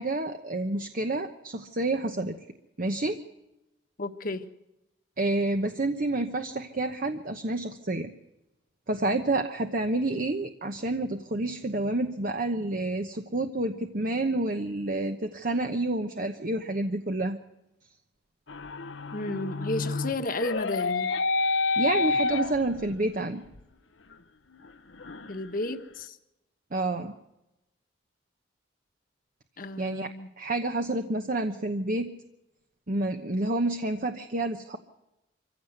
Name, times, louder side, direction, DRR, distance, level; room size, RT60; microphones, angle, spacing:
voice 1, 0.0-2.4 2.8-3.2 5.2-8.1 8.9-17.4 21.8-23.4 26.7-27.1 29.8-30.1 30.4-32.1 32.9-34.8, right 2 dB, 50° right, 1.1 m, -29 dB
voice 2, 4.0-4.4 19.1-21.1 25.3-26.2 29.6-30.3, left 2 dB, 50° left, 1.4 m, -32 dB
sound 1, 18.5-23.1 23.5-23.6 24.1-24.2 24.5-25.8, left 3 dB, 85° left, 1.0 m, -29 dB
24.5 x 16.0 x 8.0 m
head